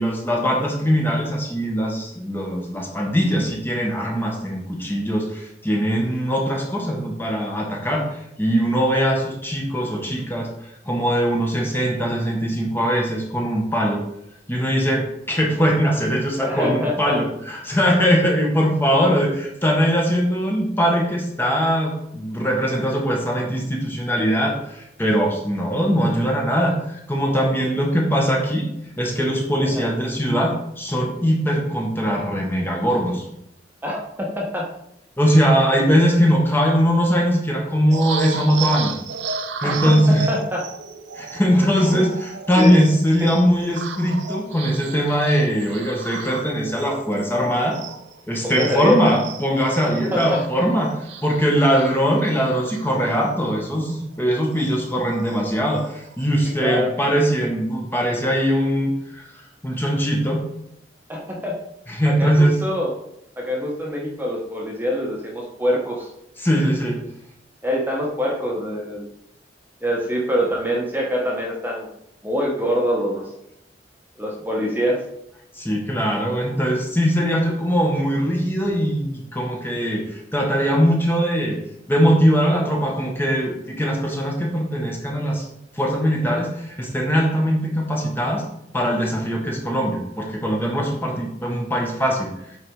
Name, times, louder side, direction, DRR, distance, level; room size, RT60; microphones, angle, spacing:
voice 1, 0.0-10.5 10.8-14.0 14.5-28.7 29.0-33.2 35.2-39.0 39.6-40.3 41.2-42.1 42.5-47.8 48.3-59.2 59.6-60.4 61.9-62.6 66.4-67.0 75.5-81.6 81.9-85.5 85.7-88.4 88.7-92.3, equal, 10° left, -1 dB, 1.3 m, -21 dB
voice 2, 16.4-17.2 27.3-27.4 29.7-29.9 33.8-34.7 39.6-40.6 41.9-42.1 42.5-42.8 48.4-49.1 49.8-50.4 56.6-56.9 61.1-61.5 62.0-62.9 63.4-66.1 67.6-69.1 69.8-71.9 72.2-73.3 74.2-75.0, equal, 10° right, -2 dB, 1.2 m, -24 dB
sound 1, 37.9-48.2 48.5-53.4 53.8-54.0 54.3-55.4 55.8-56.2, right 5 dB, 85° right, 0.7 m, -34 dB
8.6 x 4.2 x 4.7 m, 0.79 s
head